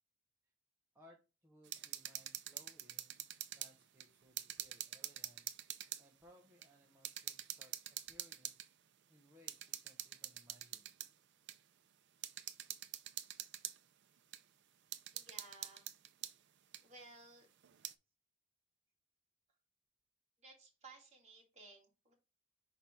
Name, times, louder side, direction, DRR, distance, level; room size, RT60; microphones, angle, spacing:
voice 1, 0.9-8.7 9.1-10.9, equal, 10° right, -2 dB, 0.9 m, -66 dB
sound 1, 1.6-3.7 4.0-6.0 6.6-6.7 7.0-8.7 9.5-11.1 11.5-11.6 12.2-13.8 14.3-14.4 14.9-16.3 16.7-16.8 17.6-17.9, right 12 dB, 60° right, 0.5 m, -45 dB
voice 2, 15.1-15.9 16.8-17.5 20.4-22.1, right 3 dB, 35° right, -1 dB, 2.2 m, -58 dB
5.6 x 4.0 x 4.4 m, 0.29 s
head